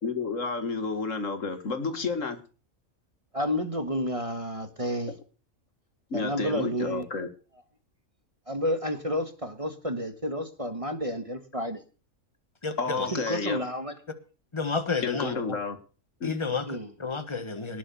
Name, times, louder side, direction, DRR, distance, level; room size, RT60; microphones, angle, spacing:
voice 1, 0.0-2.4 6.1-7.3 12.8-13.6 15.0-15.8 16.2-16.3, left 4 dB, 65° left, 2.0 m, -31 dB
voice 2, 3.3-5.1 6.1-7.1 8.5-11.8 13.1-13.9 16.6-16.9, equal, 25° right, 1.5 m, -30 dB
voice 3, 12.6-13.1 14.5-15.4 16.2-17.8, left 4 dB, 20° left, 1.4 m, -31 dB
19.0 x 6.4 x 7.0 m
omnidirectional pair, 1.5 m